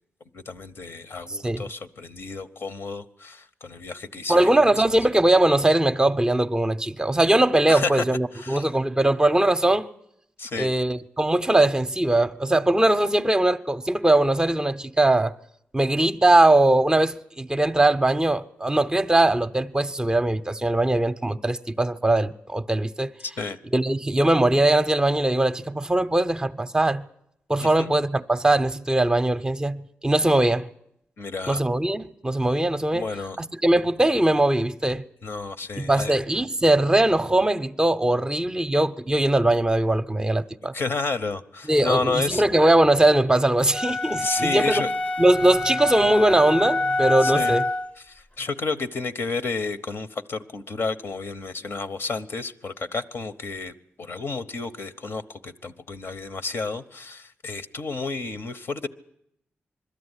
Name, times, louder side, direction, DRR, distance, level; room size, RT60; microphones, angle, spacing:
voice 1, 0.3-4.5 7.7-8.0 8.3-8.7 10.4-10.7 23.2-23.6 27.8-27.9 31.2-31.6 32.9-33.4 35.2-36.2 40.7-42.4 44.2-44.9 47.2-47.6 48.1-58.9, left 3 dB, 60° left, 0.9 m, -31 dB
voice 2, 4.3-9.9 10.6-15.3 15.7-23.1 23.7-27.0 27.5-30.7 31.5-33.1 33.6-35.0 35.8-40.7 41.7-44.8 45.2-47.6, right 1 dB, 20° right, 0.7 m, -21 dB
sound 1, 43.7-48.0, left 2 dB, 30° left, 0.7 m, -26 dB
21.5 x 13.5 x 9.8 m
cardioid pair, 85°, 4 cm